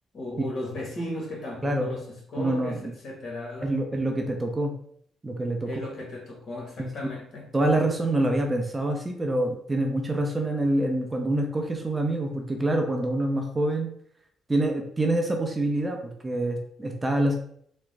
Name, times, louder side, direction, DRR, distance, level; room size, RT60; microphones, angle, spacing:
voice 1, 0.1-3.8 5.6-7.5, left 1 dB, 55° left, 1.2 m, -36 dB
voice 2, 1.6-1.9 2.4-2.9 3.6-4.8 5.2-5.7 6.8-7.1 7.5-13.9 14.5-16.0 16.2-17.4, right 1 dB, 20° right, 0.6 m, -26 dB
3.5 x 2.1 x 3.2 m
cardioid pair, 90°, 0 cm